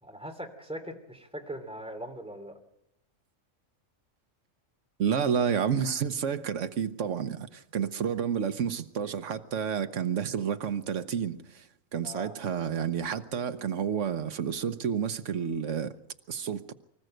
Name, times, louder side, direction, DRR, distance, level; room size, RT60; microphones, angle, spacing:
voice 1, 0.0-2.5 12.0-12.3, right 1 dB, 5° right, 3.1 m, -40 dB
voice 2, 5.0-11.7 11.9-15.9 16.3-16.6, right 7 dB, 70° right, 1.3 m, -30 dB
24.5 x 14.5 x 7.9 m
omnidirectional pair, 1.3 m